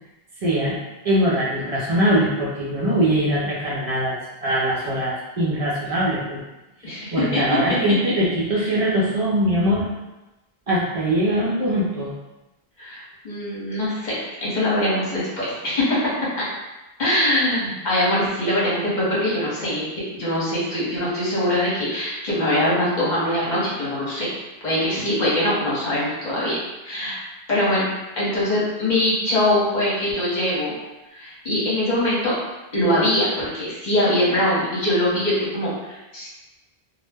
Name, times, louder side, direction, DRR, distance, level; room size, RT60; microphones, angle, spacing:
voice 1, 0.4-0.8 1.0-6.4 7.1-9.9 10.7-12.1, right 1 dB, 45° right, -6 dB, 0.5 m, -22 dB
voice 2, 6.8-7.4 8.6-8.8 12.8-16.4 17.0-24.3 24.6-26.6 26.8-27.2 27.5-27.9 28.1-30.7 31.1-32.4 32.7-36.3, left 1 dB, 45° left, -7 dB, 0.9 m, -22 dB
2.1 x 2.0 x 3.3 m, 1.0 s
omnidirectional pair, 1.1 m